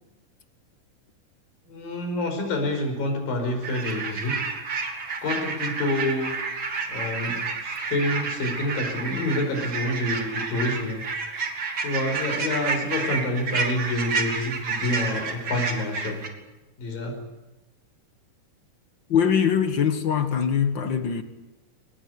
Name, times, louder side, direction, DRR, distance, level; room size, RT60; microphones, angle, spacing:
voice 1, 1.7-4.3 5.2-6.3 6.9-11.0 11.8-16.2 16.8-17.2, left 1 dB, 90° left, 6.7 m, -28 dB
sound 1, 3.6-16.3, right 4 dB, 40° right, 2.9 m, -30 dB
voice 2, 19.1-21.2, left 7 dB, 50° left, 1.5 m, -22 dB
23.5 x 19.5 x 9.9 m
omnidirectional pair, 3.9 m